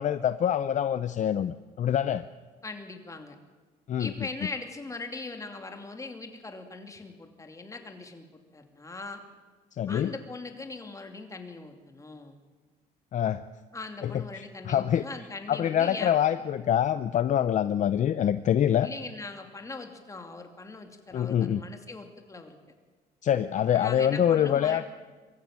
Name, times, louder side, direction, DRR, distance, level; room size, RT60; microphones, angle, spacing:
voice 1, 0.0-2.2 3.9-4.1 9.8-10.1 13.1-13.4 14.0-15.0 15.5-18.9 21.1-21.6 23.2-24.8, left 10 dB, 45° left, 13 dB, 0.7 m, -25 dB
voice 2, 2.6-3.4 4.0-9.2 9.9-12.4 13.7-16.2 18.8-22.6 23.6-24.9, left 3 dB, 20° left, 5 dB, 2.7 m, -40 dB
23.0 x 14.5 x 8.9 m, 1.3 s
cardioid pair, 110°, 17 cm